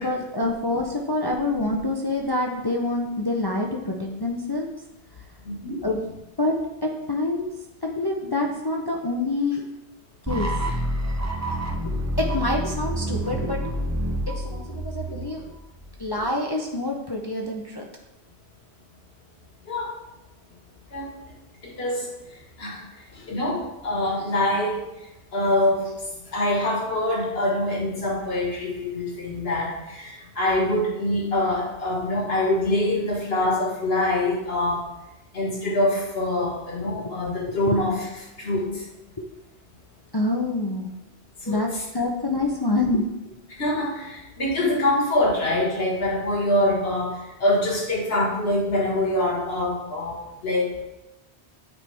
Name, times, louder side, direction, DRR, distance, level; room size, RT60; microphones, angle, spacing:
voice 1, 0.0-4.7 5.8-6.1 6.4-7.5 7.8-9.6 10.3-10.5 11.8-13.6 14.3-15.5 16.0-17.8 36.8-37.0 37.7-37.8 39.2-39.3 40.1-40.9 41.5-43.1, left 2 dB, 30° left, 0 dB, 0.5 m, -26 dB
voice 2, 5.4-5.8 19.7-20.0 20.9-21.1 21.6-22.1 22.6-22.8 23.3-24.8 25.3-25.9 26.3-34.9 35.3-38.0 38.4-38.8 41.4-41.8 43.6-50.8, left 1 dB, 65° left, -2 dB, 1.9 m, -24 dB
sound 1, 10.3-16.2, right 1 dB, 20° right, 0.4 m, -28 dB
8.8 x 4.6 x 3.4 m, 0.93 s
omnidirectional pair, 1.1 m